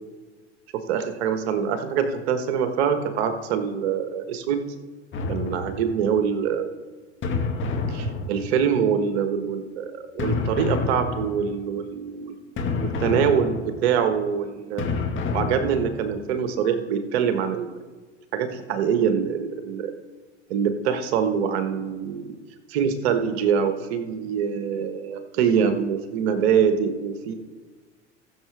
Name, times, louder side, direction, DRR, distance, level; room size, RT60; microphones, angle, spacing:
voice 1, 0.7-4.6 5.3-6.7 7.9-12.4 12.8-13.5 13.8-14.8 15.3-17.7 18.3-19.9 20.5-22.3 22.7-27.3, right 7 dB, 60° right, 8 dB, 1.5 m, -24 dB
sound 1, 5.1-6.1 7.2-8.8 10.2-11.6 12.6-14.0 14.8-16.2, left 4 dB, 35° left, 2.1 m, -28 dB
20.0 x 6.8 x 3.5 m, 1.4 s
figure-of-eight pair, 80°, 36 cm